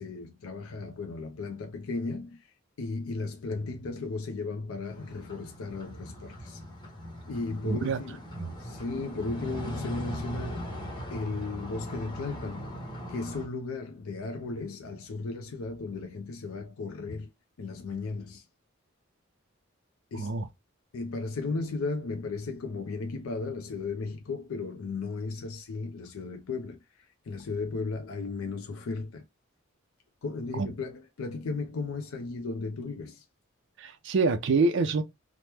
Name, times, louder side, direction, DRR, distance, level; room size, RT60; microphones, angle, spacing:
voice 1, 0.0-2.4 2.8-6.6 7.3-8.2 8.6-10.7 11.1-12.7 13.1-17.3 17.6-18.5 20.1-20.3 20.9-26.8 27.3-29.2 30.2-33.2, left 3 dB, 85° left, 0.5 m, -35 dB
sound 1, 4.8-13.4, equal, 20° left, 0.8 m, -39 dB
voice 2, 7.6-8.0 8.3-8.6 20.1-20.5 30.5-30.7 33.8-35.0, right 4 dB, 60° right, 0.5 m, -26 dB
3.0 x 2.0 x 3.3 m
head